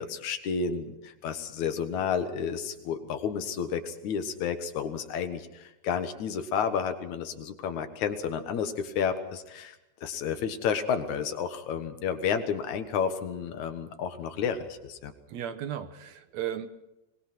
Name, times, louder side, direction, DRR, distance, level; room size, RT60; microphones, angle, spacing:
voice 1, 0.0-9.7 10.0-15.1, left 7 dB, 80° left, 8 dB, 2.8 m, -31 dB
voice 2, 15.3-16.7, right 10 dB, 70° right, 10 dB, 2.3 m, -35 dB
23.0 x 20.0 x 6.0 m, 0.95 s
omnidirectional pair, 3.3 m